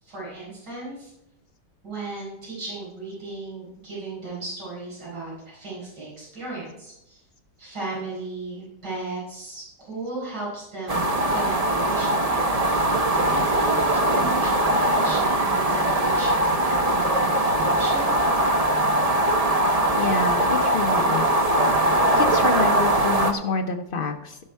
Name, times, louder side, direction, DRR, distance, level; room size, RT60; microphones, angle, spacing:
voice 1, 0.0-1.1 1.8-7.2 7.6-12.4 13.2-18.1, right 2 dB, 70° right, -7 dB, 5.4 m, -36 dB
sound 1, 10.9-23.3, right 1 dB, 40° right, 0.5 m, -21 dB
voice 2, 20.0-21.9 22.2-24.4, left 4 dB, 60° left, 5 dB, 0.6 m, -28 dB
16.0 x 5.4 x 4.5 m, 0.85 s
omnidirectional pair, 1.9 m